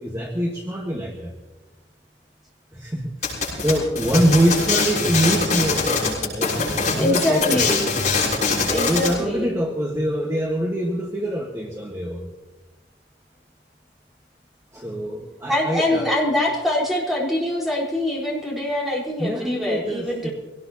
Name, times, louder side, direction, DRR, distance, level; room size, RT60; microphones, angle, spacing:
voice 1, 0.0-1.3 2.7-7.6 8.7-12.3 14.7-16.1 19.2-20.3, right 1 dB, 15° right, 0 dB, 1.4 m, -24 dB
sound 1, 3.2-9.1, left 4 dB, 40° left, 6.7 m, -23 dB
voice 2, 7.0-7.9 8.7-9.5 15.5-20.3, left 1 dB, ahead, -5 dB, 4.2 m, -24 dB
24.0 x 18.5 x 2.9 m, 1.1 s
head